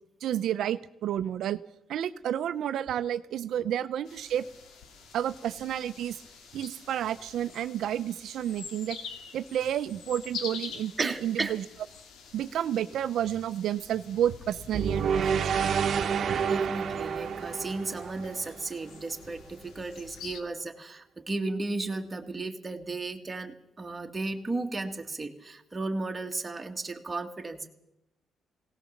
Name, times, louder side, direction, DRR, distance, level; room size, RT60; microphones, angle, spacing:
voice 1, 0.2-1.6 1.9-4.4 5.1-6.2 6.5-9.0 9.3-11.6 12.3-15.7, right 10 dB, 70° right, 12 dB, 0.7 m, -30 dB
sound 1, 4.1-20.4, left 5 dB, 80° left, 2.1 m, -46 dB
voice 2, 11.0-11.5 16.2-27.7, right 3 dB, 15° right, 4 dB, 1.7 m, -34 dB
sound 2, 14.7-19.0, right 7 dB, 50° right, 1.1 m, -29 dB
20.0 x 18.0 x 7.2 m, 0.88 s
cardioid pair, 155°, 0 cm